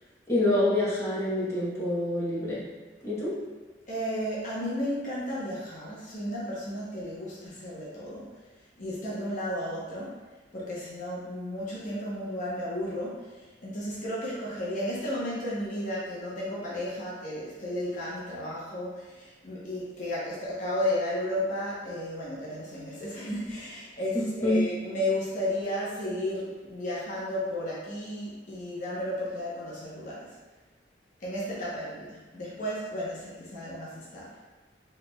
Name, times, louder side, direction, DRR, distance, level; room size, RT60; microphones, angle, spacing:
voice 1, 0.3-2.6 3.0-3.3 24.1-24.6, left 1 dB, 15° left, -8 dB, 0.9 m, -26 dB
voice 2, 3.9-8.3 8.8-10.1 10.5-30.4 31.2-34.3, left 1 dB, 45° left, -7 dB, 0.8 m, -33 dB
4.7 x 3.2 x 2.2 m, 1.3 s
head